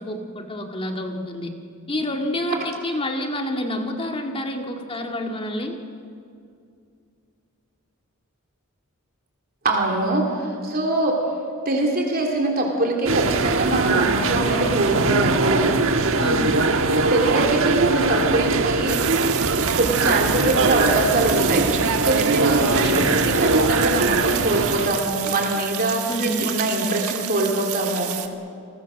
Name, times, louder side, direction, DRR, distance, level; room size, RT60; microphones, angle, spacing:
voice 1, 0.0-1.5 1.9-5.8 16.2-16.7 22.5-23.1 26.1-26.5, left 1 dB, 25° left, 3 dB, 2.0 m, -28 dB
voice 2, 9.6-11.2 11.6-15.7 17.1-19.0 19.7-28.1, right 2 dB, 45° right, 0 dB, 3.2 m, -23 dB
sound 1, 13.1-24.9, right 3 dB, 65° right, 1.4 m, -21 dB
sound 2, 18.9-28.3, right 11 dB, 85° right, 1.4 m, -30 dB
29.5 x 21.0 x 6.5 m, 2.4 s
head